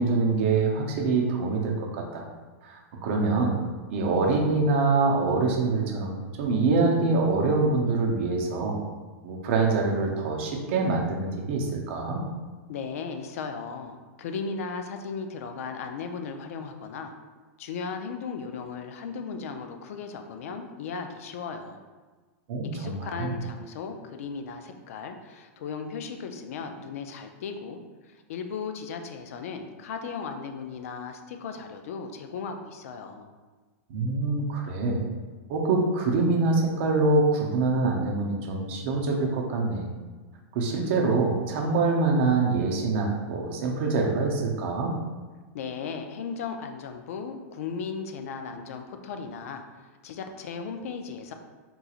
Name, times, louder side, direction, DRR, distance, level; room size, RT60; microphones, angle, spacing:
voice 1, 0.0-2.2 2.6-3.6 3.9-6.1 6.4-8.8 9.2-12.2 22.5-23.3 33.9-35.0 35.5-39.9 40.5-45.0, right 3 dB, 50° right, 0 dB, 0.6 m, -25 dB
voice 2, 12.7-17.1 17.6-21.8 22.6-33.3 45.5-49.6 50.0-51.3, left 5 dB, 65° left, 6 dB, 0.4 m, -36 dB
3.7 x 2.9 x 2.4 m, 1.4 s
supercardioid pair, 155°, 8 cm